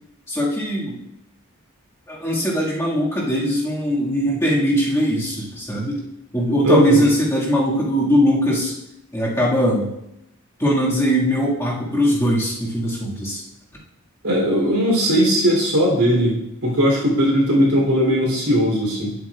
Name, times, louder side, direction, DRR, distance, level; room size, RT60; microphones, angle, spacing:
voice 1, 0.3-1.0 2.1-6.1 6.3-8.7 9.1-9.9 10.6-13.4, equal, 15° left, -6 dB, 1.9 m, -20 dB
voice 2, 6.6-7.0 14.2-16.4 16.6-19.1, equal, 90° right, -2 dB, 3.2 m, -18 dB
10.5 x 8.1 x 2.4 m, 0.82 s
head